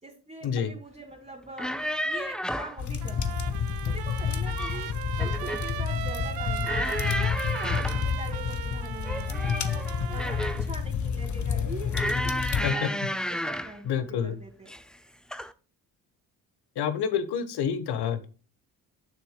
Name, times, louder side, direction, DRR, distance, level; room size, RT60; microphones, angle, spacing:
voice 1, 0.0-1.7 2.0-4.9 5.2-9.8 10.1-13.0 13.3-13.9 14.2-14.8, right 3 dB, 15° right, -3 dB, 2.2 m, -43 dB
sound 1, 1.4-2.8 4.2-4.8 5.2-5.7 6.6-8.1 9.0-10.7 11.9-13.8 14.7-15.0 15.3-15.5, equal, ahead, 0.7 m, -32 dB
sound 2, 2.8-12.7, left 7 dB, 40° left, 1.0 m, -30 dB
Trumpet, 3.0-10.6, right 11 dB, 55° right, 0.8 m, -38 dB
voice 2, 13.8-14.4 16.8-18.3, left 7 dB, 60° left, 12 dB, 1.2 m, -28 dB
9.5 x 7.1 x 2.2 m, 0.35 s
hypercardioid pair, 50°, 44 cm